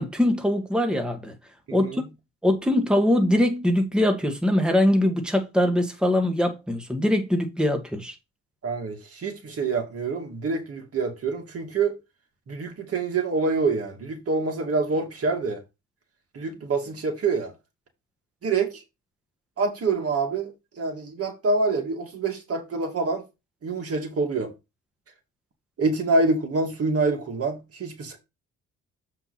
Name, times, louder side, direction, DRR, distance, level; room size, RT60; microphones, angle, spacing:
voice 1, 0.0-1.4 1.7-2.0 2.4-8.1, left 1 dB, 5° right, 1.7 m, -22 dB
voice 2, 1.7-2.1 8.6-12.0 12.5-15.6 16.3-17.5 18.4-18.8 19.6-20.5 20.8-23.2 23.6-24.5 25.8-28.2, right 3 dB, 50° right, 2.4 m, -26 dB
7.8 x 4.6 x 4.2 m
cardioid pair, 90°, 30 cm